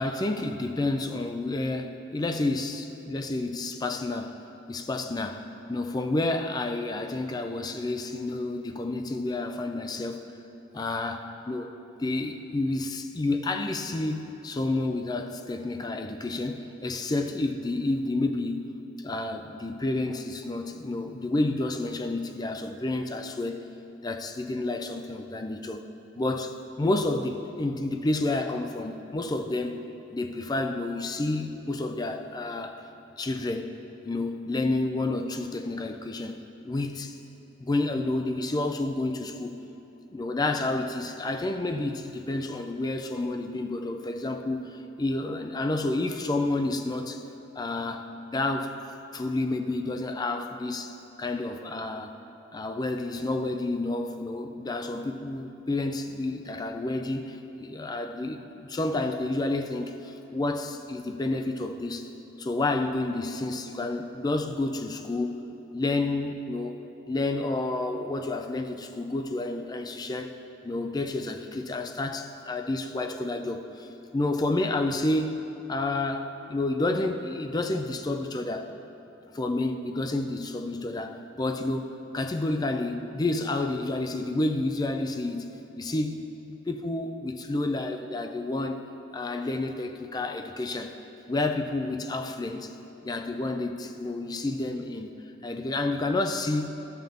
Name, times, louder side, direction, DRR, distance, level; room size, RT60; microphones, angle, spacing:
voice 1, 0.0-10.3 10.7-11.7 12.0-18.7 19.0-23.6 24.0-25.8 26.2-29.8 30.1-32.8 33.2-37.2 37.6-39.6 40.1-47.2 47.6-48.7 49.1-52.1 52.5-62.1 62.4-65.4 65.7-66.8 67.1-70.3 70.6-73.9 74.1-75.4 75.7-78.7 79.3-81.9 82.1-85.5 85.8-88.8 89.1-91.0 91.3-92.7 93.0-96.7, left 2 dB, 20° left, 6 dB, 0.3 m, -30 dB
13.0 x 5.7 x 3.6 m, 3.0 s
head